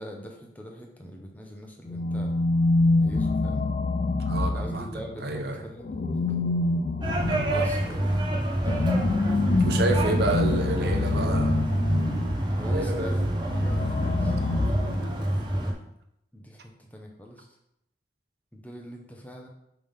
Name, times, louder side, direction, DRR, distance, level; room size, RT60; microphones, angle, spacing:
voice 1, 0.0-2.3 3.0-3.7 4.5-6.2 7.5-8.1 8.6-8.9 9.5-10.2 12.6-14.4 14.6-15.9 16.3-17.6 18.5-19.5, equal, 10° left, 1 dB, 0.8 m, -42 dB
sound 1, 1.9-5.2 5.9-12.5 13.4-15.4, left 2 dB, 40° left, 0.3 m, -26 dB
voice 2, 4.3-4.8 5.2-5.6 7.2-7.7 9.6-11.6 12.6-13.4, right 2 dB, 65° right, 5 dB, 0.7 m, -29 dB
sound 2, 7.0-15.7, right 1 dB, 25° right, 0.8 m, -27 dB
5.4 x 3.5 x 5.5 m, 0.81 s
head